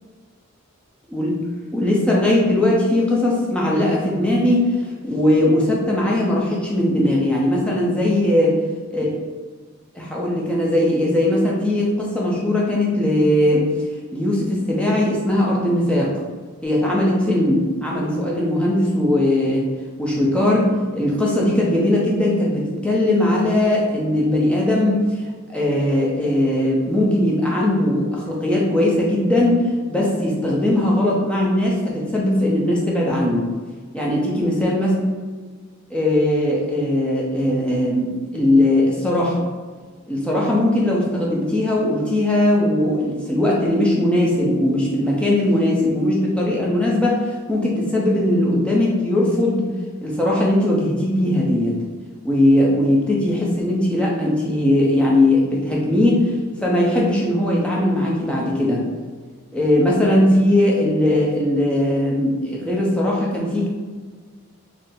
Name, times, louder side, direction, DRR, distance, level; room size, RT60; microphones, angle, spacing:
voice 1, 1.7-4.7 5.0-8.6 8.9-9.1 9.9-13.7 14.1-16.1 16.6-19.7 20.0-25.2 25.5-33.5 33.9-34.9 35.9-39.4 40.1-49.6 50.0-51.7 52.2-58.8 59.5-63.7, left 1 dB, 5° left, -4 dB, 0.6 m, -19 dB
3.7 x 2.0 x 4.2 m, 1.5 s
head